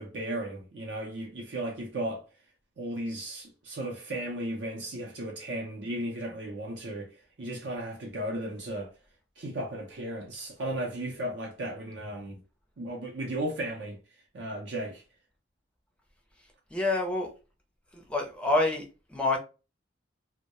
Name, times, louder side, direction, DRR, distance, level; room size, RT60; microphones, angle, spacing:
voice 1, 0.0-2.2 2.8-7.1 7.4-8.9 9.4-12.4 12.8-14.0 14.3-15.0, right 1 dB, 70° right, 0.6 m, -35 dB
voice 2, 16.7-17.3 17.9-19.4, left 2 dB, 5° left, 0.5 m, -27 dB
2.2 x 2.1 x 2.8 m
head